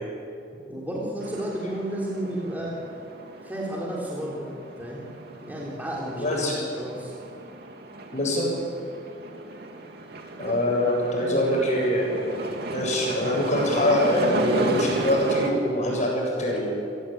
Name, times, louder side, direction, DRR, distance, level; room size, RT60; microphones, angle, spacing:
voice 1, 0.7-3.0 3.4-4.5 4.8-5.0 5.4-7.1 10.4-10.6 11.1-11.4, right 1 dB, 10° right, -4 dB, 3.7 m, -32 dB
sound 1, 1.2-15.5, right 2 dB, 60° right, 2.6 m, -34 dB
voice 2, 6.2-6.5 8.1-8.4 10.4-12.2 12.7-16.6, left 1 dB, 40° left, -1 dB, 7.9 m, -24 dB
29.5 x 17.5 x 8.9 m, 2.5 s
head